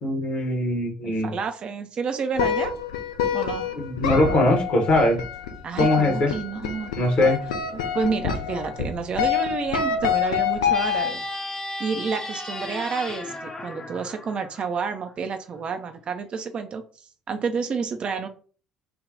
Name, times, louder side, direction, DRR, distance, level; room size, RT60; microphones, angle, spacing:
voice 1, 0.0-1.3 3.8-5.2 5.8-6.3 6.9-7.4, left 1 dB, 45° left, 2 dB, 1.2 m, -21 dB
voice 2, 1.0-2.7 3.3-3.7 5.6-6.9 7.7-11.2 11.8-16.8 17.3-18.3, right 5 dB, 40° right, 7 dB, 0.5 m, -29 dB
sound 1, 2.4-11.3, left 7 dB, 70° left, 0.5 m, -27 dB
sound 2, 10.7-15.1, left 2 dB, 25° left, 0.6 m, -35 dB
3.4 x 2.2 x 3.8 m, 0.40 s
figure-of-eight pair, 50°, 3 cm